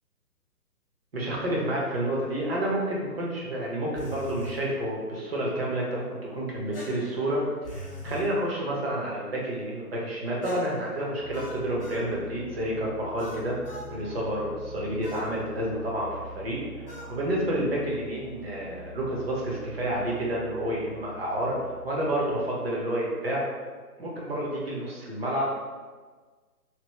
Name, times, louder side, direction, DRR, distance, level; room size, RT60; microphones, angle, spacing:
voice 1, 1.1-13.5 13.9-16.6 16.8-21.6 21.8-23.4 24.0-25.4, right 1 dB, 40° right, -4 dB, 0.8 m, -29 dB
sound 1, 3.9-4.6 6.7-8.3 10.4-12.1 13.2-13.9 15.0-15.3 16.9-17.1, left 1 dB, 40° left, 0.5 m, -41 dB
sound 2, 11.2-22.4, equal, 80° right, 1.1 m, -45 dB
3.0 x 2.6 x 2.9 m, 1.4 s
figure-of-eight pair, 150°, 48 cm